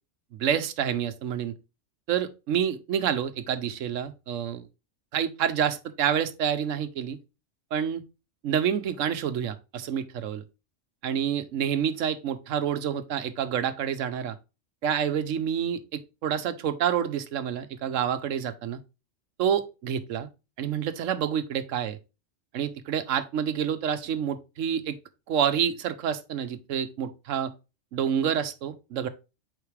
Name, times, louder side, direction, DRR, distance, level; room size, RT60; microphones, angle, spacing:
voice 1, 0.3-1.5 2.1-4.7 5.1-7.2 7.7-8.0 8.4-10.4 11.0-14.4 14.8-18.8 19.4-20.3 20.6-22.0 22.5-25.0 25.3-27.5 27.9-29.1, right 8 dB, 80° right, 1.1 m, -28 dB
8.3 x 3.9 x 3.2 m
omnidirectional pair, 1.3 m